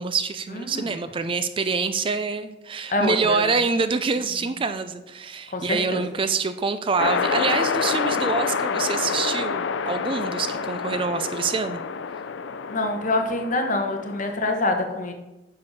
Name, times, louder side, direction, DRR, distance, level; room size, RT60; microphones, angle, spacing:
voice 1, 0.0-11.8, right 4 dB, 30° right, 11 dB, 0.4 m, -26 dB
voice 2, 0.5-0.9 2.9-3.5 5.5-6.0 12.7-15.1, left 2 dB, 45° left, 4 dB, 1.3 m, -26 dB
sound 1, 7.0-14.3, left 5 dB, 90° left, 0.5 m, -27 dB
9.6 x 6.7 x 4.2 m, 1.0 s
head